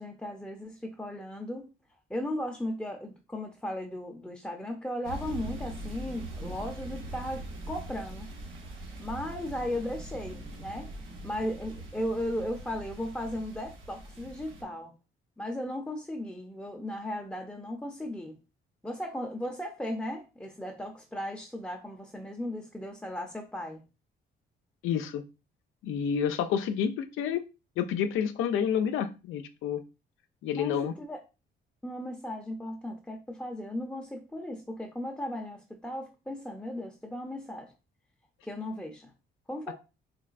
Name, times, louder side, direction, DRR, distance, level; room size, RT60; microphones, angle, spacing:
voice 1, 0.0-1.7 2.1-8.3 9.0-10.9 11.2-14.9 15.4-18.4 18.8-23.8 30.5-31.2 31.8-37.7 38.4-39.1 39.5-39.7, left 1 dB, 5° left, 0.6 m, -36 dB
sound 1, 5.0-14.6, right 2 dB, 85° right, 1.1 m, -42 dB
voice 2, 24.8-25.2 25.8-27.4 27.8-29.8 30.4-30.9 39.7-39.8, left 8 dB, 85° left, 0.4 m, -29 dB
3.9 x 3.2 x 2.4 m
cardioid pair, 90°, 20 cm